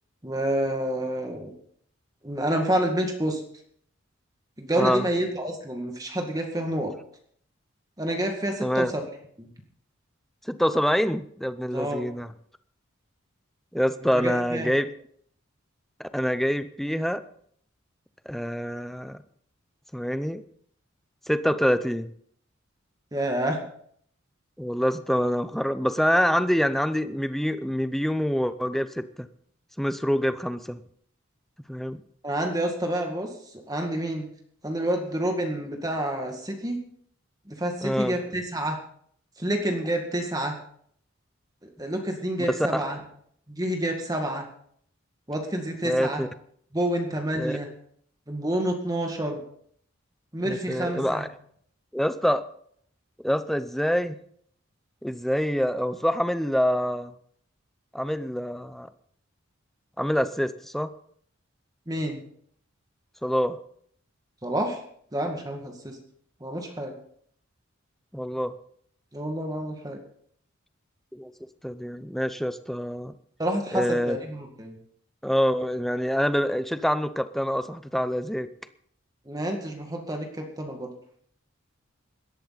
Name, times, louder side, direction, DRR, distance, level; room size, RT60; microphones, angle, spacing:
voice 1, 0.2-1.5 2.2-3.4 4.6-6.9 8.0-8.9 9.4-9.5 11.7-12.0 14.1-14.7 23.1-23.6 32.2-33.3 33.7-34.3 34.6-36.8 37.5-38.8 39.4-40.6 41.6-43.0 43.5-44.4 45.3-46.2 46.7-47.7 48.3-49.4 50.3-51.3 61.9-62.2 64.4-64.8 65.1-66.0 66.4-66.9 69.1-70.0 73.4-74.8 79.3-80.9, right 1 dB, 20° right, 3 dB, 1.9 m, -28 dB
voice 2, 4.7-5.1 8.6-8.9 10.4-12.3 13.7-14.9 16.0-17.2 18.3-19.2 19.9-20.4 21.3-22.1 24.6-29.3 29.8-30.8 31.7-32.0 37.8-38.2 42.5-42.8 45.8-46.3 47.3-47.6 50.4-51.3 51.9-52.5 53.2-54.2 55.0-57.1 57.9-58.9 60.0-60.9 63.2-63.6 68.1-68.5 71.1-71.3 71.6-73.1 73.7-74.2 75.2-78.5, equal, ahead, 11 dB, 0.6 m, -26 dB
17.5 x 13.0 x 4.1 m, 0.62 s
head